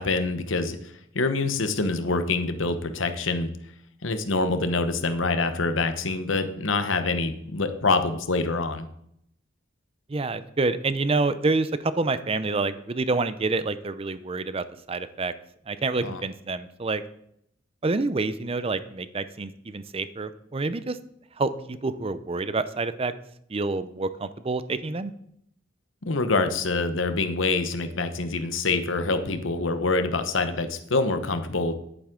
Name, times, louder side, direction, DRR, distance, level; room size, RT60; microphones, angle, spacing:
voice 1, 0.0-3.5 4.0-8.9 16.0-16.2 26.0-31.7, left 3 dB, 80° left, 8 dB, 1.0 m, -26 dB
voice 2, 10.1-15.3 15.7-17.0 17.8-21.0 21.4-23.1 23.5-25.1, right 3 dB, 30° right, 13 dB, 0.5 m, -27 dB
10.5 x 9.3 x 3.8 m, 0.72 s
head